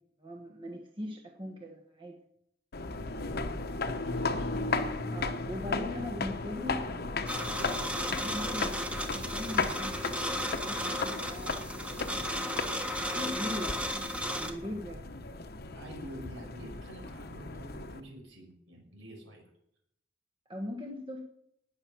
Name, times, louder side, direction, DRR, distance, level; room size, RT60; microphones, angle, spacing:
voice 1, 0.2-2.2 5.1-6.8 8.0-11.6 13.1-13.8 14.3-15.0 20.5-21.2, left 1 dB, 25° right, 2 dB, 1.3 m, -40 dB
sound 1, 2.7-18.0, left 3 dB, 55° left, 1.0 m, -36 dB
voice 2, 3.0-3.4 4.1-4.6 15.7-19.4, right 1 dB, 70° right, 1 dB, 5.9 m, -48 dB
sound 2, 7.3-14.5, equal, 5° right, 1.4 m, -34 dB
19.5 x 7.1 x 6.0 m, 0.74 s
head